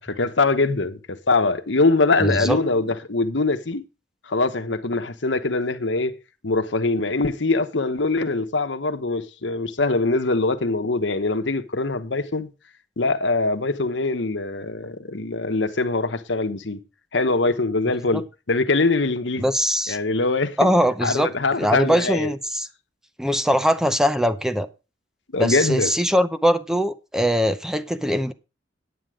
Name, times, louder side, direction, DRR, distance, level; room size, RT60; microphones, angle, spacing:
voice 1, 0.0-3.8 4.3-6.1 6.4-12.5 13.0-16.8 17.1-19.5 19.9-20.6 21.0-22.3 25.3-25.9, left 3 dB, 75° left, 1.1 m, -23 dB
voice 2, 2.2-2.6 18.1-18.2 19.4-20.0 20.6-21.3 21.6-22.7 23.2-24.7 25.4-28.3, equal, 5° right, 0.7 m, -21 dB
9.7 x 9.0 x 5.0 m
head